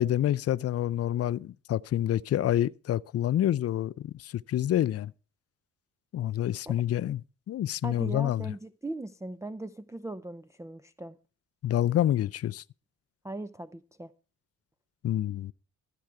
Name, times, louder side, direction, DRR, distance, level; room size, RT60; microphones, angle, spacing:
voice 1, 0.0-5.1 6.1-7.2 7.5-8.5 11.6-12.6 15.0-15.5, left 12 dB, 40° left, 0.4 m, -27 dB
voice 2, 7.8-11.2 13.2-14.1, right 2 dB, 10° right, 0.5 m, -39 dB
13.5 x 7.9 x 4.6 m
supercardioid pair, 65°, 37 cm